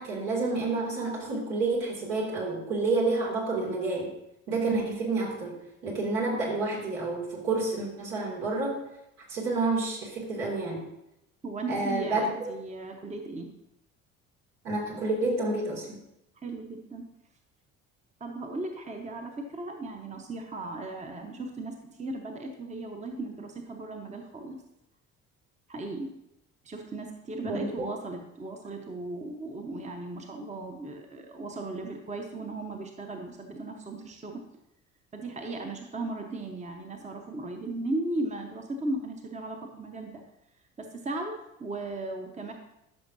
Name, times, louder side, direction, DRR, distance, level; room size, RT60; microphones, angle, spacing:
voice 1, 0.0-4.1 4.5-8.8 9.3-10.8 11.7-12.2 14.6-16.0 27.4-27.9, right 3 dB, 70° right, -3 dB, 2.5 m, -29 dB
voice 2, 11.4-13.5 16.4-17.1 18.2-24.6 25.7-26.1 26.6-34.4 35.1-40.2 40.8-42.5, right 2 dB, 15° right, 4 dB, 1.0 m, -36 dB
12.5 x 6.0 x 2.7 m, 0.84 s
figure-of-eight pair, 55°, 41 cm